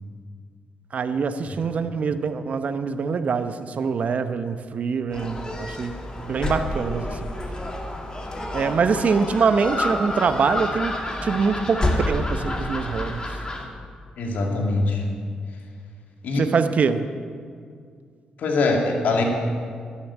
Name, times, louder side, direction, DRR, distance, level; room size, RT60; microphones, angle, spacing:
voice 1, 0.9-7.3 8.5-10.9 11.2-13.3 16.4-17.0, right 5 dB, 55° right, 10 dB, 0.9 m, -24 dB
Gull seagull, 5.1-13.7, left 1 dB, 30° left, 2.3 m, -29 dB
voice 2, 14.2-15.0 16.2-16.5 18.4-19.2, left 3 dB, 75° left, 1 dB, 2.3 m, -22 dB
11.5 x 11.0 x 8.6 m, 2.2 s
cardioid pair, 70°, 3 cm